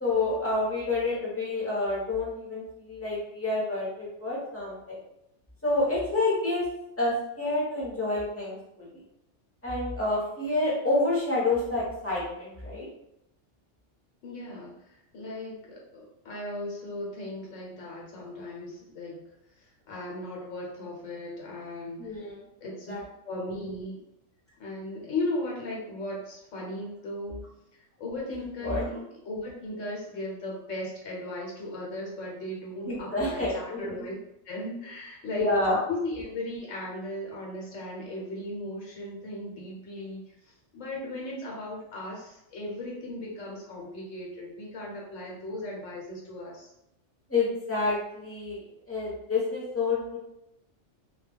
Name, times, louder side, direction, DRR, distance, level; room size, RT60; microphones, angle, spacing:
voice 1, 0.0-5.0 5.6-6.6 7.0-9.0 9.6-12.9 22.0-22.4 22.9-23.0 28.6-28.8 32.9-34.1 35.4-35.8 47.3-48.6 48.9-50.2, left 2 dB, 15° left, -6 dB, 0.7 m, -28 dB
voice 2, 14.2-19.2 19.6-22.3 22.6-22.9 23.2-24.0 24.6-27.4 27.7-29.0 29.2-34.1 34.4-35.6 35.9-46.7, left 1 dB, 85° left, -3 dB, 1.1 m, -37 dB
2.3 x 2.2 x 3.3 m, 0.83 s
omnidirectional pair, 1.3 m